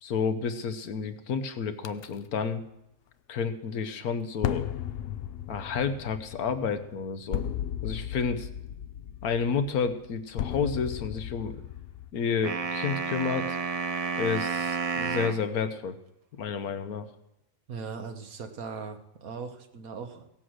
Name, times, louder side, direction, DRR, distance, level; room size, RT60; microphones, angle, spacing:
voice 1, 0.0-2.7 3.3-4.7 5.5-7.4 7.8-8.5 9.2-11.6 12.1-13.6 14.2-16.0 16.3-17.1, left 6 dB, 85° left, 10 dB, 1.4 m, -30 dB
sound 1, 1.8-2.1 4.4-12.1, left 10 dB, 65° left, 0.6 m, -35 dB
sound 2, 12.4-15.4, right 5 dB, 45° right, 0.4 m, -30 dB
voice 2, 17.7-20.3, right 5 dB, 75° right, 6 dB, 1.6 m, -39 dB
16.5 x 7.6 x 6.3 m, 0.86 s
omnidirectional pair, 1.5 m